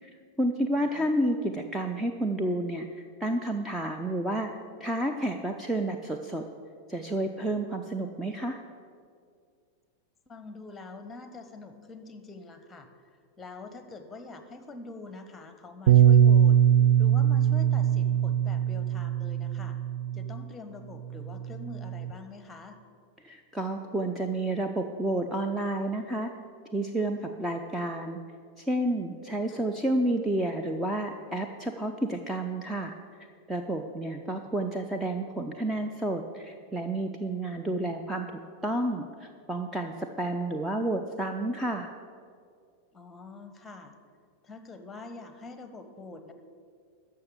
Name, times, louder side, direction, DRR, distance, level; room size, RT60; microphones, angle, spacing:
voice 1, 0.0-4.5 4.8-6.5 6.9-8.6 23.2-26.3 26.7-28.2 28.6-32.9 33.5-41.9, right 1 dB, 5° right, 3 dB, 0.7 m, -30 dB
voice 2, 0.8-1.1 10.3-12.9 13.4-16.6 17.0-19.8 20.1-22.8 29.5-29.6 34.2-34.5 42.9-43.9 44.4-46.3, left 3 dB, 15° left, 8 dB, 1.2 m, -45 dB
Bass guitar, 15.9-20.4 21.1-22.1, right 9 dB, 55° right, 0.4 m, -22 dB
13.5 x 5.7 x 8.2 m, 2.2 s
figure-of-eight pair, 90°, 0 cm